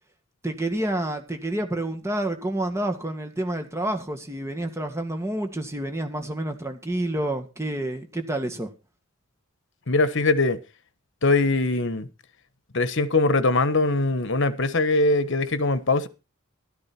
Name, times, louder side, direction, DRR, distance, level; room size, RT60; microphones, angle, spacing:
voice 1, 0.4-8.7, right 1 dB, 15° right, 1.9 m, -29 dB
voice 2, 9.9-10.6 11.2-12.1 12.7-16.1, left 2 dB, 55° left, 1.2 m, -22 dB
13.0 x 12.0 x 4.4 m
head